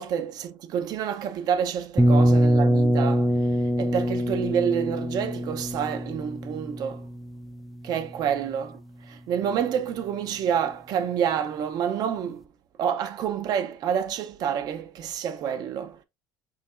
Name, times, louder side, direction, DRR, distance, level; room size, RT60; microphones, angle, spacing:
voice 1, 0.0-7.1 7.8-12.4 12.8-16.0, right 8 dB, 50° right, 0.7 m, -28 dB
sound 1, 2.0-7.7, equal, ahead, 0.3 m, -23 dB
5.9 x 2.9 x 2.5 m
cardioid pair, 155°, 9 cm